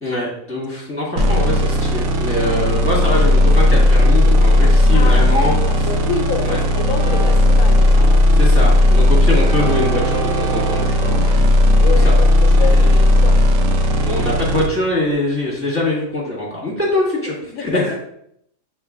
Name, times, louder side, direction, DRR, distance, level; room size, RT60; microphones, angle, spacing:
voice 1, 0.0-5.6 6.4-6.6 8.4-11.4 11.8-12.1 12.5-13.0 14.0-18.0, left 1 dB, 10° left, 1.6 m, -23 dB
sound 1, 1.2-14.7, left 1 dB, 70° right, 0.9 m, -14 dB
Train, 2.4-15.4, right 6 dB, 85° right, 1.3 m, -35 dB
voice 2, 4.9-8.3 11.8-13.5 17.4-18.0, left 6 dB, 90° left, 1.1 m, -28 dB
5.9 x 3.8 x 2.4 m
omnidirectional pair, 1.5 m